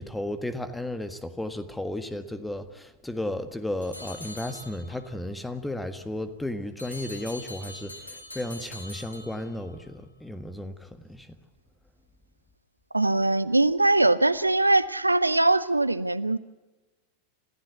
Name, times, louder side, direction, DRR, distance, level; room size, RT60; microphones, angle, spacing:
voice 1, 0.0-11.3, left 1 dB, 5° left, 11 dB, 1.5 m, -34 dB
sound 1, 3.8-5.2 6.8-9.8, left 2 dB, 85° left, 2.5 m, -43 dB
voice 2, 12.9-16.4, right 2 dB, 85° right, 17 dB, 0.6 m, -22 dB
27.5 x 14.5 x 8.2 m, 1.2 s
figure-of-eight pair, 90°, 0 cm